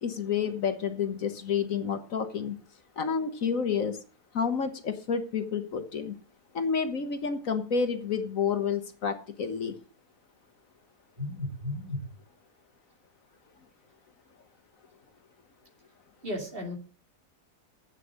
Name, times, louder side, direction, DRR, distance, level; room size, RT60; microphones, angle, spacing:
voice 1, 0.0-2.6 3.0-4.0 4.3-6.1 6.5-9.7, left 6 dB, 60° left, 8 dB, 1.5 m, -29 dB
voice 2, 11.2-12.0 16.2-16.8, left 1 dB, 35° right, 3 dB, 2.6 m, -34 dB
10.5 x 8.1 x 6.4 m, 0.38 s
omnidirectional pair, 1.6 m